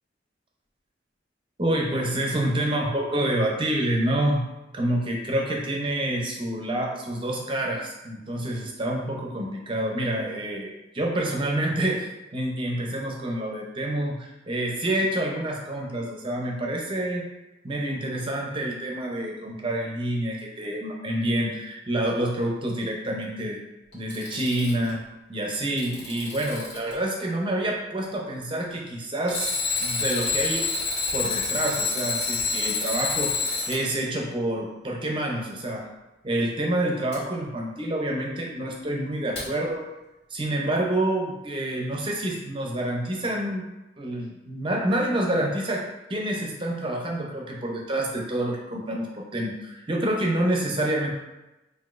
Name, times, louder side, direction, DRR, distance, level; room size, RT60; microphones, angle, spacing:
voice 1, 1.6-4.5 4.7-17.3 17.6-23.6 23.9-25.0 25.3-29.5 29.8-30.7 31.1-35.9 36.2-39.9 40.3-43.7 44.0-45.8 46.1-51.1, right 1 dB, 25° right, -1 dB, 0.6 m, -27 dB
Alarm, 23.9-24.9 25.5-26.9 29.3-33.8 37.1-37.2 39.4-39.5, left 4 dB, 65° left, 1.4 m, -27 dB
5.9 x 2.6 x 2.5 m, 1.0 s
head